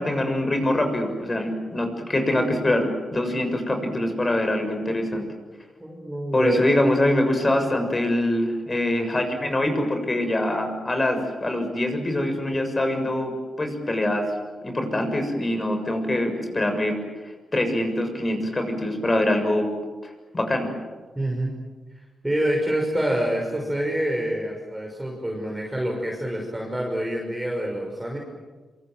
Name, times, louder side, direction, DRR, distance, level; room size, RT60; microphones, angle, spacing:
voice 1, 0.0-5.3 6.3-14.3 14.6-17.0 17.5-19.7 20.3-20.7, left 1 dB, 25° left, 6 dB, 6.8 m, -24 dB
voice 2, 5.8-6.7 21.2-21.6 22.2-28.2, right 1 dB, 10° right, -1 dB, 6.1 m, -26 dB
27.0 x 26.0 x 7.7 m, 1.3 s
cardioid pair, 95°, 0 cm